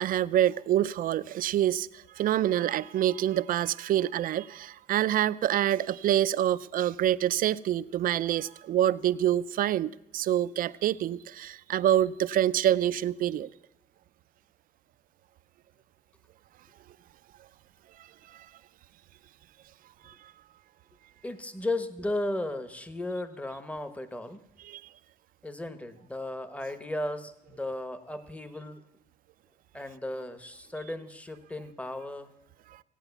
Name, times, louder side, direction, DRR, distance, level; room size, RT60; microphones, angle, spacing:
voice 1, 0.0-1.9 2.2-13.5 20.1-20.2 24.7-24.8, right 12 dB, 55° right, 16 dB, 0.5 m, -26 dB
voice 2, 21.2-24.4 25.4-28.8 29.7-32.3, left 1 dB, 10° left, 11 dB, 1.1 m, -35 dB
16.5 x 9.1 x 7.0 m, 0.91 s
cardioid pair, 110°, 17 cm